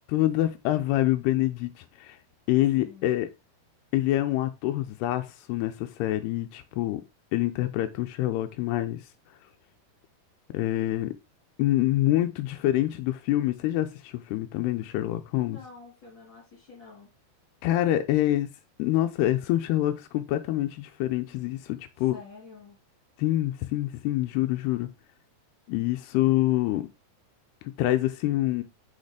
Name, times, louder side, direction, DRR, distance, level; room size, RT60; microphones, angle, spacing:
voice 1, 0.1-2.2 2.5-3.3 3.9-7.0 7.3-9.0 10.5-11.1 11.6-15.6 17.6-18.5 18.8-22.2 23.2-24.9 25.7-26.9 27.6-28.6, left 14 dB, 90° left, 2.7 m, -26 dB
voice 2, 2.8-3.2 15.4-17.1 22.0-22.8, left 5 dB, 35° left, 2.5 m, -48 dB
6.6 x 5.8 x 5.0 m
omnidirectional pair, 4.7 m